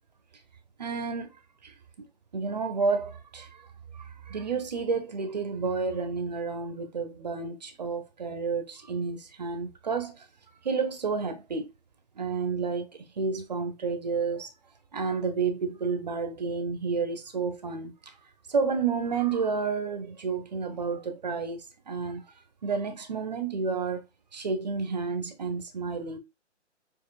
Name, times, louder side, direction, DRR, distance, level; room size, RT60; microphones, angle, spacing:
voice 1, 0.8-1.3 1.6-2.1 2.3-3.7 3.9-10.3 10.6-11.7 12.2-12.9 13.2-14.5 14.9-18.1 18.5-22.3 22.6-24.1 24.3-26.2, right 5 dB, 35° right, 0.7 m, -30 dB
6.7 x 3.0 x 2.3 m
figure-of-eight pair, 150°, 37 cm